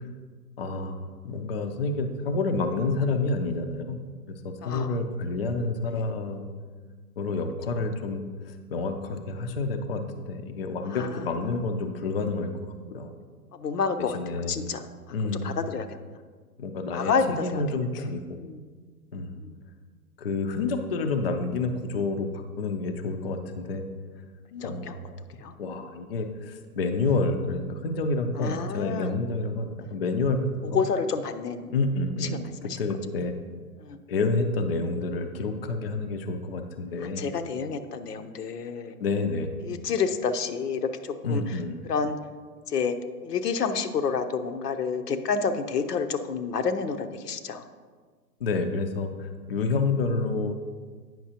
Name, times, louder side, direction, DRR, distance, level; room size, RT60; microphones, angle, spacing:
voice 1, 0.6-4.0 4.3-6.5 7.2-12.5 12.9-13.1 14.0-14.5 15.1-15.5 16.6-18.2 19.1-19.3 20.2-23.8 24.6-25.2 25.6-30.4 30.6-30.8 31.7-32.4 32.8-33.3 34.1-37.2 39.0-39.5 41.2-41.8 48.4-50.6, left 3 dB, 40° left, 6 dB, 0.4 m, -29 dB
voice 2, 4.6-5.0 5.9-6.0 10.9-11.3 13.5-14.9 15.3-15.9 16.9-17.9 18.3-18.6 19.4-19.5 24.5-25.0 25.4-25.5 28.4-29.1 29.8-29.9 30.7-31.7 32.2-32.8 33.8-34.0 37.0-38.9 39.6-42.2 42.7-43.0 43.2-47.6, left 5 dB, 80° left, 8 dB, 0.8 m, -29 dB
8.9 x 5.8 x 2.8 m, 1.5 s
hypercardioid pair, 150°, 47 cm